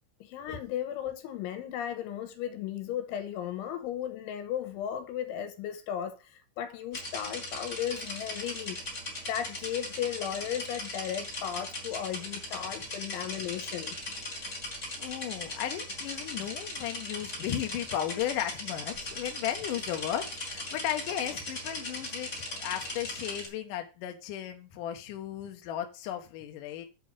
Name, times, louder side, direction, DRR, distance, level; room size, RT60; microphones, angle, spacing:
voice 1, 0.2-8.9 9.3-14.0, left 10 dB, 90° left, 3.4 m, -35 dB
sound 1, 6.9-23.5, left 1 dB, 30° left, 1.4 m, -39 dB
voice 2, 15.0-26.9, left 11 dB, 70° left, 2.0 m, -35 dB
7.9 x 4.7 x 6.7 m
omnidirectional pair, 5.5 m